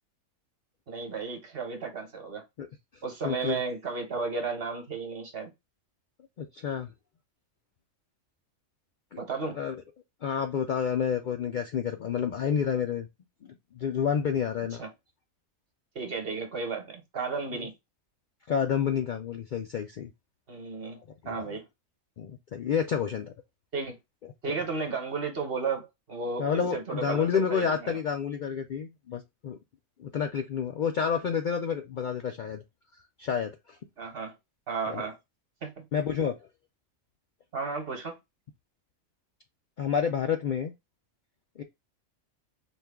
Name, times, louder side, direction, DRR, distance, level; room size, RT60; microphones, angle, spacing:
voice 1, 0.9-2.4 3.0-5.5 9.2-9.6 14.8-14.9 15.9-17.7 20.5-21.0 21.2-21.6 23.7-24.0 24.4-28.0 34.0-34.3 34.7-35.2 35.6-35.7 37.5-38.2, right 4 dB, 45° right, 1.2 m, -33 dB
voice 2, 3.2-3.6 6.4-6.9 9.1-9.2 9.6-9.8 10.2-13.1 13.7-14.9 18.5-20.1 21.2-21.5 22.2-23.3 26.4-29.6 30.0-32.6 33.2-33.5 34.9-35.1 35.9-36.3 39.8-40.7 41.6-41.7, left 7 dB, 85° left, 0.4 m, -29 dB
4.3 x 2.3 x 3.4 m
omnidirectional pair, 1.4 m